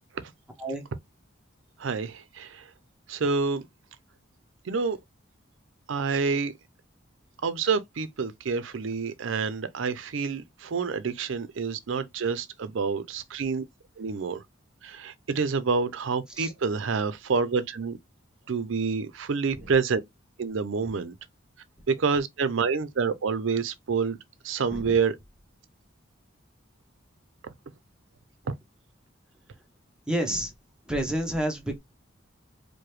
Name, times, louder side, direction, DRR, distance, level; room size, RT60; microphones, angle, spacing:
voice 1, 1.8-2.6 3.1-3.6 4.7-5.0 5.9-6.5 7.4-13.7 14.0-14.4 14.8-18.0 18.5-20.0 20.4-21.1 21.9-24.2 24.4-25.2 27.4-27.5, right 5 dB, 75° right, 0.5 m, -28 dB
voice 2, 30.1-30.5 30.9-31.8, right 1 dB, 5° right, 0.7 m, -29 dB
4.7 x 2.1 x 3.0 m
head